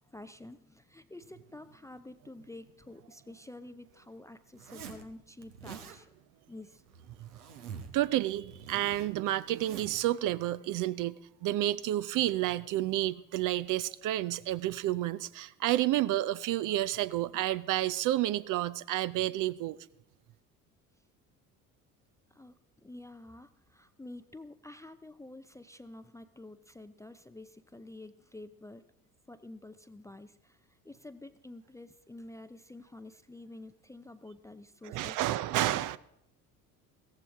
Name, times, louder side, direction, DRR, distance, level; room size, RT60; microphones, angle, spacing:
voice 1, 0.1-6.1 6.5-6.8 22.3-28.8 29.3-30.6 30.8-35.2, left 2 dB, 5° left, 12 dB, 0.5 m, -49 dB
Zipper (clothing), 4.5-5.0 5.4-6.0 6.8-8.0 8.3-10.0, right 7 dB, 85° right, 1.2 m, -47 dB
voice 2, 7.9-19.8 34.8-36.0, right 14 dB, 45° right, 16 dB, 0.6 m, -30 dB
16.0 x 14.5 x 3.6 m, 0.75 s
hypercardioid pair, 65°, 44 cm